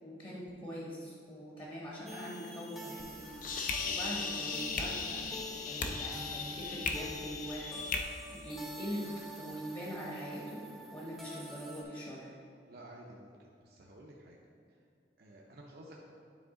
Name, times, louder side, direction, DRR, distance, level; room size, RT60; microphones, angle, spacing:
voice 1, 0.0-10.6 10.9-12.3, equal, 25° left, -4 dB, 1.0 m, -43 dB
sound 1, 2.1-11.8, left 1 dB, ahead, 0.6 m, -48 dB
sound 2, 3.0-8.0, left 4 dB, 50° left, 0.5 m, -37 dB
voice 2, 12.7-14.4 15.2-16.0, right 1 dB, 60° right, -2 dB, 0.6 m, -52 dB
9.2 x 3.7 x 3.7 m, 2.4 s
head